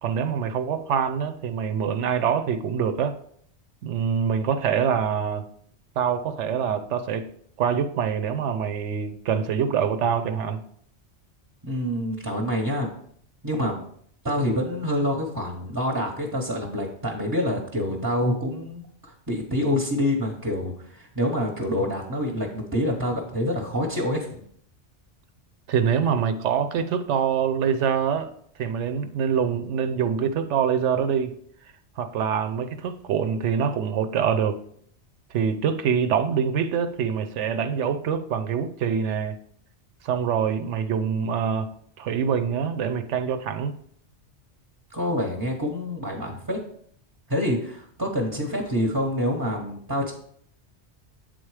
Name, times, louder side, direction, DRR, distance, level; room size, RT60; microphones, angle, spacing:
voice 1, 0.0-3.2 3.8-5.5 6.0-7.3 7.6-10.6 25.7-28.3 28.6-31.4 32.0-34.6 35.3-39.4 40.0-41.7 42.0-43.8, right 7 dB, 85° right, 0.9 m, -25 dB
voice 2, 11.6-12.9 13.4-13.8 14.2-24.4 44.9-46.6 47.3-50.1, left 1 dB, 20° right, 0.7 m, -27 dB
7.8 x 3.9 x 4.8 m
omnidirectional pair, 1.2 m